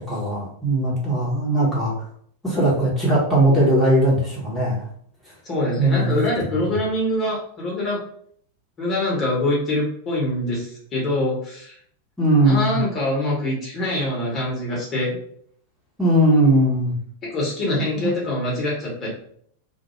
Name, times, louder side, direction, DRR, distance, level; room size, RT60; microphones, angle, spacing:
voice 1, 0.1-1.9 2.4-4.8 5.8-6.3 6.6-6.7 12.2-12.8 16.0-17.0 17.7-18.1, right 1 dB, 5° left, -8 dB, 1.1 m, -19 dB
voice 2, 5.4-8.0 8.8-11.7 12.4-15.2 17.2-19.1, left 1 dB, 25° left, -4 dB, 1.1 m, -24 dB
2.4 x 2.2 x 3.1 m, 0.62 s
figure-of-eight pair, 90°, 0 cm